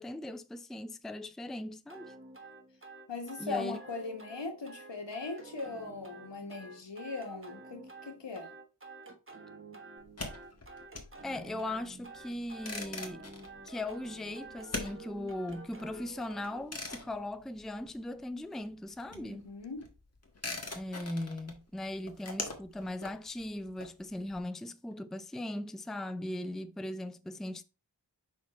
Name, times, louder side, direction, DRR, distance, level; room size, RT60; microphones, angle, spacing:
voice 1, 0.0-2.1 3.4-3.8 11.2-13.2 13.6-19.5 20.7-27.6, left 1 dB, ahead, 0.5 m, -39 dB
sound 1, 1.9-16.7, right 3 dB, 30° right, 1.2 m, -50 dB
voice 2, 3.1-8.5 19.1-19.8, left 3 dB, 85° left, 1.7 m, -39 dB
sound 2, 10.0-18.3 18.6-24.4, left 2 dB, 35° left, 1.6 m, -43 dB
5.9 x 4.3 x 4.3 m
wide cardioid pair, 55°, 42 cm